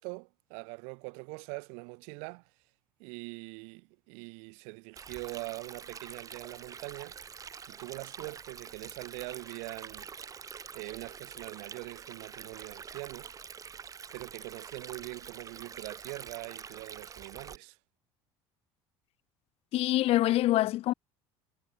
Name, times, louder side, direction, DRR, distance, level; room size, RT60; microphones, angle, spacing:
voice 1, 0.0-2.5 3.0-7.2 7.7-10.1 10.7-13.3 14.1-17.8, right 38 dB, 80° right, 1.4 m, -43 dB
Stream, 5.0-17.6, right 6 dB, 30° right, 1.7 m, -46 dB
voice 2, 19.7-20.9, left 15 dB, 55° left, 1.0 m, -25 dB
supercardioid pair, 110°, 12 cm